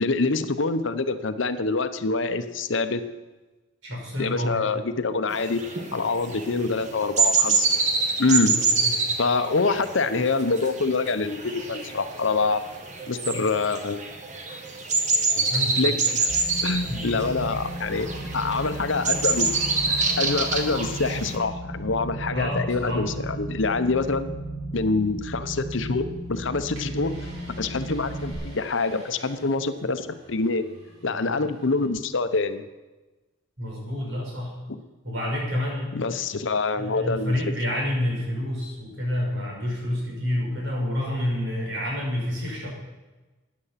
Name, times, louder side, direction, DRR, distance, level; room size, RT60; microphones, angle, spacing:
voice 1, 0.0-3.0 4.2-5.6 5.9-7.7 8.2-8.6 9.2-12.7 13.1-14.0 15.4-16.3 16.6-18.1 18.3-19.5 19.9-24.3 24.7-27.1 27.5-30.6 31.0-32.6 35.9-37.3, left 3 dB, 65° left, 11 dB, 0.8 m, -25 dB
voice 2, 3.8-4.7 8.5-8.9 15.5-16.0 16.9-17.0 22.3-23.0 33.6-34.5 35.0-36.0 36.8-42.7, left 1 dB, 65° right, -2 dB, 5.6 m, -28 dB
sound 1, 5.3-21.4, right 4 dB, 35° right, 1.6 m, -26 dB
sound 2, 16.3-28.3, right 1 dB, 5° right, 4.5 m, -35 dB
sound 3, 25.9-31.9, equal, 90° right, 5.6 m, -47 dB
15.0 x 9.8 x 5.8 m, 1.2 s
head